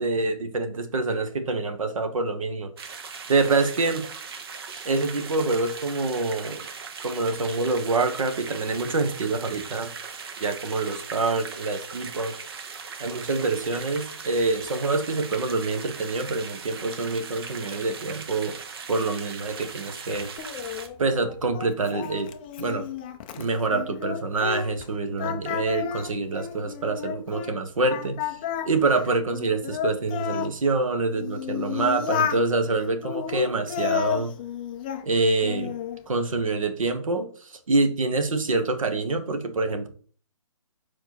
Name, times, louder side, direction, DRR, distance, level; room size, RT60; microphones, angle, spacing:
voice 1, 0.0-2.7 3.3-4.1 4.8-6.6 7.0-9.9 10.4-12.3 13.0-18.6 18.9-20.3 21.0-22.3 22.6-22.9 23.4-28.2 28.6-34.3 35.0-35.7 36.1-39.9, right 3 dB, 75° right, 7 dB, 1.6 m, -26 dB
sound 1, 2.8-20.9, right 5 dB, 45° right, 1.1 m, -39 dB
Singing, 20.4-24.9 25.2-27.5 27.9-30.5 31.1-32.4 33.0-35.0 35.4-36.0, left 9 dB, 15° left, 0.4 m, -31 dB
5.1 x 4.4 x 6.1 m, 0.43 s
hypercardioid pair, 155°, 17 cm